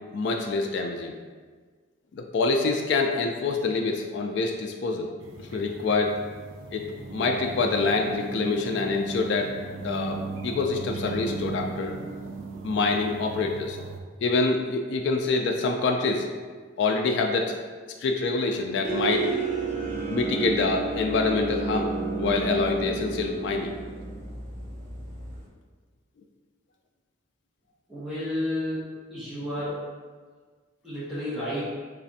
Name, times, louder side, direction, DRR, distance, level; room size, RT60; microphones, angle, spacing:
voice 1, 0.1-1.1 2.1-5.1 5.4-6.2 6.7-6.9 7.1-9.5 9.8-12.0 12.6-13.8 14.2-16.3 16.8-17.6 18.0-19.3 20.1-23.7 29.5-29.6, left 3 dB, 60° left, 3 dB, 0.3 m, -26 dB
sound 1, 5.2-14.0, right 3 dB, 90° right, 0.5 m, -37 dB
sound 2, 18.8-25.4, right 4 dB, 40° right, 0.7 m, -31 dB
voice 2, 27.9-29.8 30.8-31.6, left 1 dB, ahead, -11 dB, 1.0 m, -31 dB
3.3 x 2.5 x 4.0 m, 1.5 s
head